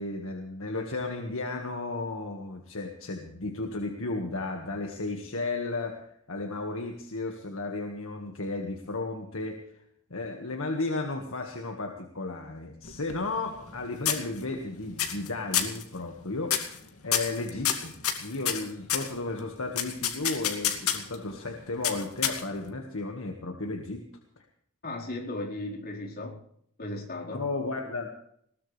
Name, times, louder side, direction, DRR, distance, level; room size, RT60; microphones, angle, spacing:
voice 1, 0.0-9.6 10.1-16.6 17.0-24.0 27.3-28.1, left 2 dB, 65° left, 2 dB, 1.8 m, -34 dB
sound 1, 12.8-13.8 14.1-14.6 15.0-15.3 15.5-15.8 16.5-16.8 17.1-19.1 19.8-21.2 21.8-22.7, left 9 dB, 85° left, 2.4 m, -28 dB
voice 2, 24.8-26.4 26.8-27.4, left 2 dB, 45° left, -2 dB, 4.6 m, -36 dB
21.0 x 18.5 x 3.4 m, 0.68 s
head